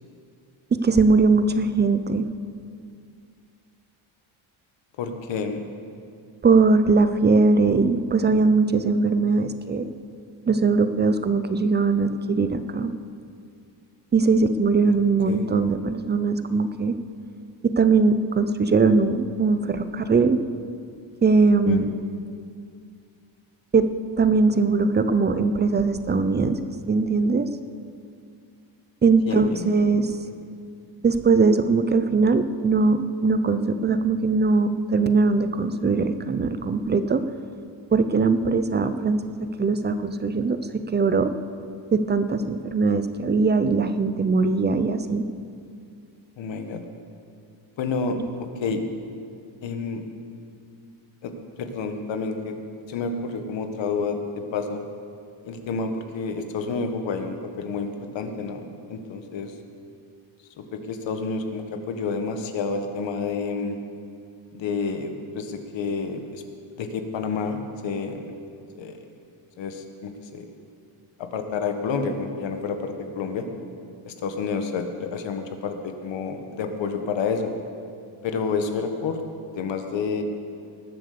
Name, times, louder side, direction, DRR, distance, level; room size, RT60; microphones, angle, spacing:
voice 1, 0.7-2.3 6.4-9.8 10.5-12.9 14.1-16.9 17.6-20.4 21.2-21.9 23.7-23.9 24.2-26.6 26.9-27.5 29.0-30.1 31.0-37.2 37.9-41.3 41.9-45.2 48.2-48.3, right 4 dB, 20° right, 11 dB, 0.6 m, -21 dB
voice 2, 5.0-5.6 14.8-14.9 15.2-15.4 21.7-21.8 29.3-30.1 46.4-46.8 47.8-48.2 48.6-48.8 49.6-50.0 51.2-51.3 51.6-52.5 52.9-54.8 55.4-57.9 58.1-59.5 60.6-63.8 64.5-66.4 66.8-68.3 68.7-69.0 69.6-70.4 71.2-73.4 74.1-77.5 78.2-79.2 79.5-80.2, left 5 dB, 60° left, 6 dB, 1.7 m, -29 dB
19.5 x 7.7 x 6.8 m, 2.3 s
cardioid pair, 115°, 50 cm